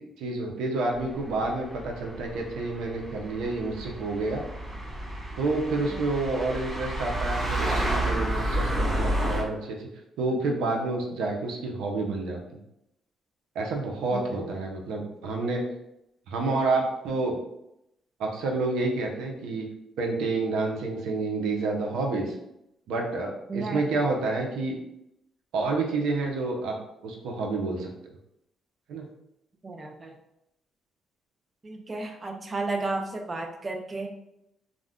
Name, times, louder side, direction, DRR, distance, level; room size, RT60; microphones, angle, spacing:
voice 1, 0.0-4.4 5.4-9.9 10.2-12.4 13.6-15.6 16.3-17.4 18.2-19.7 20.0-22.3 22.9-24.8 25.5-26.7 27.0-27.9 28.9-29.0, right 3 dB, 85° right, 0 dB, 0.5 m, -29 dB
sound 1, 1.0-9.4, right 1 dB, 50° right, 0.8 m, -30 dB
voice 2, 14.1-14.5 23.5-23.8 29.6-30.1 31.6-34.1, right 2 dB, 30° right, 3 dB, 0.4 m, -33 dB
2.4 x 2.1 x 3.5 m, 0.82 s
cardioid pair, 90°, 0 cm